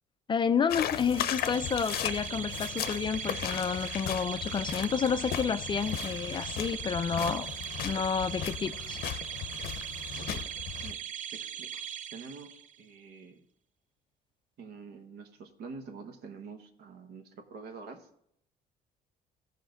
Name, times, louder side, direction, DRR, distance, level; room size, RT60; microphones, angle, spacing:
voice 1, 0.3-7.5 7.8-9.0, left 6 dB, 30° left, 0.3 m, -30 dB
sound 1, 0.7-10.9, left 10 dB, 65° left, 0.6 m, -37 dB
sound 2, 1.0-12.8, right 9 dB, 50° right, 0.4 m, -40 dB
voice 2, 10.1-10.5 10.8-11.0 11.3-11.8 12.1-13.4 14.6-18.1, right 4 dB, 70° right, 1.2 m, -46 dB
15.0 x 5.0 x 3.9 m
cardioid pair, 110°, 17 cm